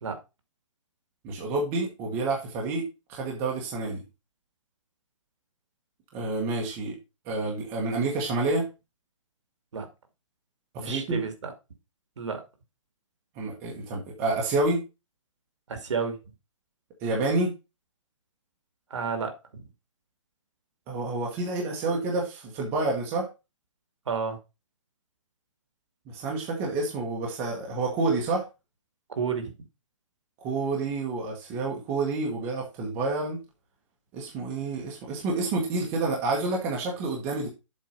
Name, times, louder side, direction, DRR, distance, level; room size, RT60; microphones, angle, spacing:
voice 1, 1.2-4.0 6.1-7.0 7.3-8.7 10.7-11.2 13.4-14.8 17.0-17.5 20.9-23.3 26.1-28.4 30.4-33.4 34.1-37.5, right 3 dB, 15° right, 1.2 m, -29 dB
voice 2, 10.8-11.5 12.2-12.4 15.7-16.2 18.9-19.6 24.1-24.4 29.1-29.5, right 5 dB, 65° right, 2.3 m, -31 dB
7.5 x 4.4 x 5.3 m
hypercardioid pair, 175°, 17 cm